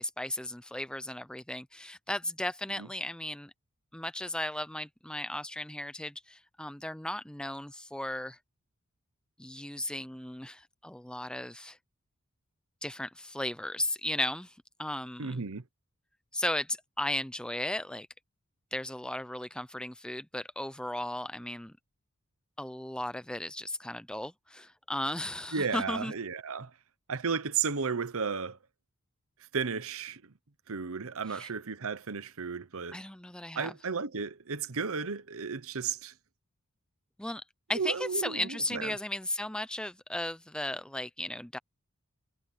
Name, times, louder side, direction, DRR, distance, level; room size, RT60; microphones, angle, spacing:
voice 1, 0.0-3.5 3.9-8.4 9.4-11.8 12.8-14.5 14.8-15.4 16.3-18.1 18.7-21.7 22.6-26.1 31.3-31.5 32.9-33.7 37.2-37.4 37.7-41.6, left 1 dB, 5° left, 0.5 m, -35 dB
voice 2, 15.2-15.6 25.5-26.7 27.1-28.6 29.5-30.2 30.7-33.0 33.5-36.1 37.7-38.9, right 5 dB, 70° right, 1.0 m, -33 dB
head